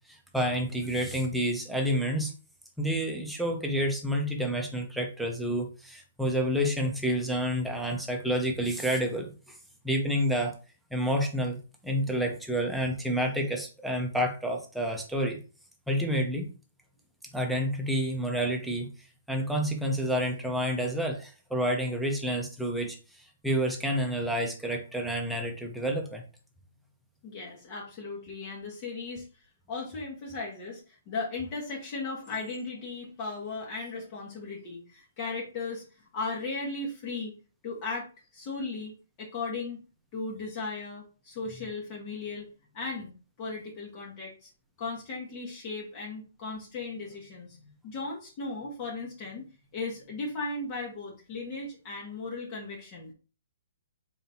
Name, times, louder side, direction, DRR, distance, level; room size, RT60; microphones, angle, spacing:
voice 1, 0.1-2.3 2.8-9.3 9.8-10.5 10.9-15.4 15.9-16.5 17.3-18.9 19.3-26.2, equal, ahead, 1 dB, 1.0 m, -29 dB
voice 2, 27.2-29.2 29.7-35.8 36.1-37.3 37.6-38.1 38.3-39.8 40.1-42.4 42.7-43.1 43.4-44.5 44.8-49.5 49.7-53.1, left 3 dB, 35° left, -3 dB, 1.6 m, -36 dB
4.0 x 3.7 x 2.9 m, 0.35 s
hypercardioid pair, 145°, 0 cm